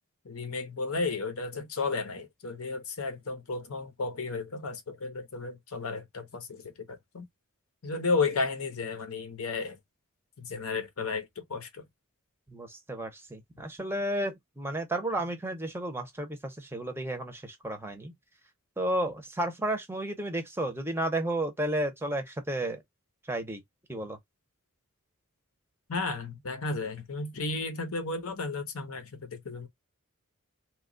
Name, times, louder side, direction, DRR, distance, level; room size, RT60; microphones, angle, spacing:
voice 1, 0.2-7.2 7.8-9.8 10.4-11.8 25.9-29.7, left 3 dB, 70° left, 0.8 m, -33 dB
voice 2, 12.5-18.1 18.8-22.8 23.3-23.6 23.9-24.2, right 1 dB, 10° right, 0.6 m, -32 dB
2.9 x 2.3 x 3.7 m
head